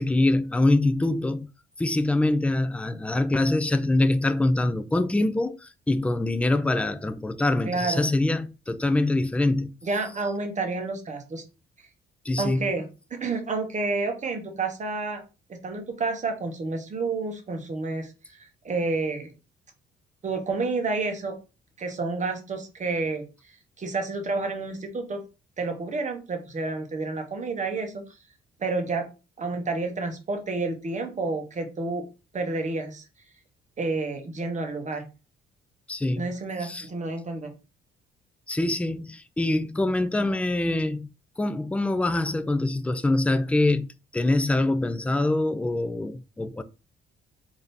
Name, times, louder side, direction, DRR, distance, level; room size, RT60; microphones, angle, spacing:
voice 1, 0.0-1.5 1.8-9.7 12.3-12.6 35.9-36.2 36.6-36.8 38.5-41.1 41.4-46.6, left 2 dB, 5° left, 0.4 m, -24 dB
voice 2, 7.6-8.1 9.8-11.4 12.4-15.2 15.5-19.3 20.2-21.4 21.8-25.2 25.6-28.0 28.6-29.1 29.4-32.0 32.3-33.0 33.8-35.1 36.2-37.5, right 3 dB, 35° right, 1.1 m, -30 dB
3.7 x 2.7 x 3.4 m
cardioid pair, 90°, 20 cm